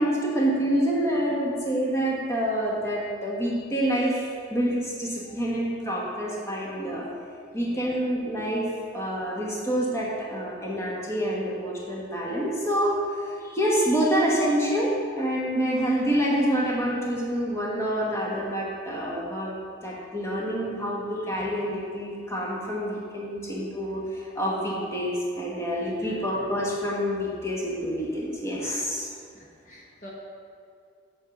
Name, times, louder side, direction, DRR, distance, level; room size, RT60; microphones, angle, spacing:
voice 1, 0.0-7.1 7.5-8.7 8.9-19.5 19.8-29.1, equal, 15° left, -4 dB, 1.2 m, -27 dB
voice 2, 7.5-8.0 25.8-26.2 29.3-30.1, left 1 dB, 40° left, -3 dB, 1.0 m, -47 dB
7.3 x 4.5 x 6.6 m, 2.3 s
head